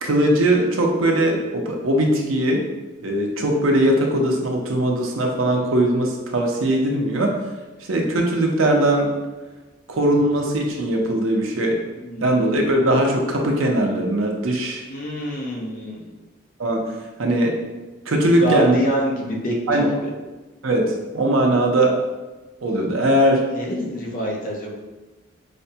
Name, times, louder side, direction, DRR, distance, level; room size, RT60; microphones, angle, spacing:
voice 1, 0.0-2.6 3.0-7.4 7.9-9.1 9.9-11.8 12.2-14.8 16.6-17.6 18.1-18.7 19.7-19.9 20.6-22.0 22.6-23.5, right 1 dB, 90° right, 1 dB, 0.6 m, -20 dB
voice 2, 12.0-12.3 14.9-16.1 18.4-20.1 23.5-24.8, equal, 40° left, -2 dB, 0.7 m, -26 dB
5.0 x 2.2 x 2.7 m, 1.2 s
head